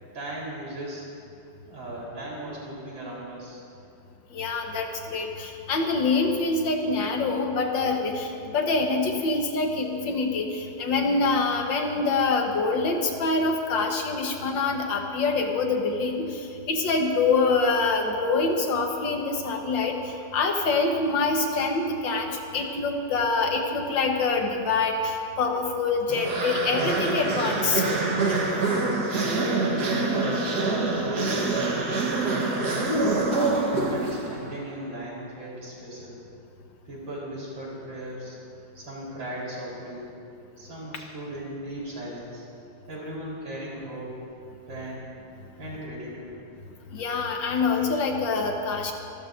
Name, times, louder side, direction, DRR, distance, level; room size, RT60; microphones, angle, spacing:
voice 1, 0.1-1.1 1.7-3.6 28.9-30.5 30.9-33.1 33.8-36.2 36.8-38.4 38.7-40.1 40.6-42.4 42.9-44.2 44.7-45.1 45.6-46.4, right 1 dB, 85° right, -5 dB, 4.7 m, -37 dB
voice 2, 4.3-16.4 16.7-27.8 46.9-48.9, left 3 dB, 80° left, 3 dB, 1.9 m, -25 dB
sound 1, 26.1-34.6, right 3 dB, 60° right, 1.9 m, -26 dB
25.5 x 13.5 x 2.6 m, 2.6 s
omnidirectional pair, 2.0 m